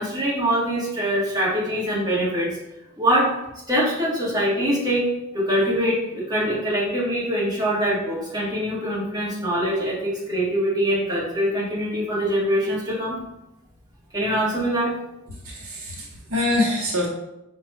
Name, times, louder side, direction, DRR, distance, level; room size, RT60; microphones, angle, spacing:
voice 1, 0.0-2.6 3.0-3.3 3.7-5.1 5.3-13.2 14.1-14.9, equal, 20° right, -8 dB, 1.3 m, -23 dB
voice 2, 15.4-17.1, left 2 dB, 75° right, -3 dB, 0.8 m, -24 dB
4.8 x 2.3 x 3.3 m, 0.89 s
head